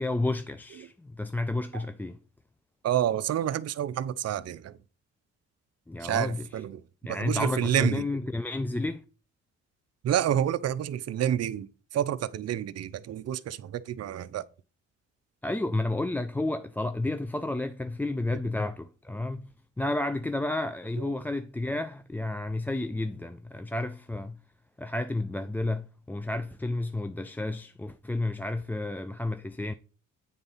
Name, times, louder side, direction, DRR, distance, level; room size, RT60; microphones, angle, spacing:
voice 1, 0.0-2.2 5.9-6.5 7.0-9.0 15.4-19.5 19.8-24.4 24.8-29.7, left 2 dB, 5° left, 0.4 m, -31 dB
voice 2, 2.8-4.8 6.0-8.0 10.0-14.4 21.0-21.1, right 10 dB, 55° right, 0.6 m, -29 dB
8.7 x 4.0 x 5.5 m
cardioid pair, 90°, 30 cm